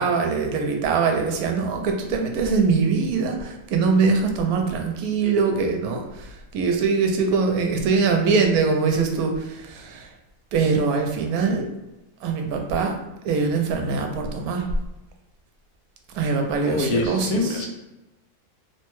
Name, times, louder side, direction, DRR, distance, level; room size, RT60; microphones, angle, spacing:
voice 1, 0.0-10.1 10.5-11.7 12.2-13.0 13.2-14.6 16.1-17.6, right 4 dB, 80° right, 3 dB, 1.0 m, -23 dB
voice 2, 16.6-17.7, left 2 dB, 85° left, 0 dB, 1.2 m, -24 dB
3.0 x 2.1 x 3.0 m, 1.0 s
omnidirectional pair, 1.6 m